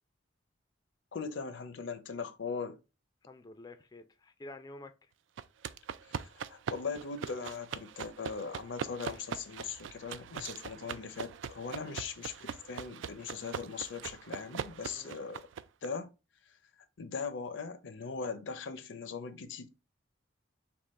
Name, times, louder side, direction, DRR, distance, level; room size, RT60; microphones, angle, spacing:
voice 1, 1.1-2.8 6.1-15.4 15.8-16.1 17.0-19.7, left 5 dB, 75° left, 0.6 m, -40 dB
voice 2, 3.3-4.9 11.7-11.9 14.9-15.2, left 2 dB, 20° left, 0.3 m, -49 dB
sound 1, 5.4-15.9, right 7 dB, 75° right, 0.3 m, -42 dB
3.6 x 2.9 x 4.1 m
head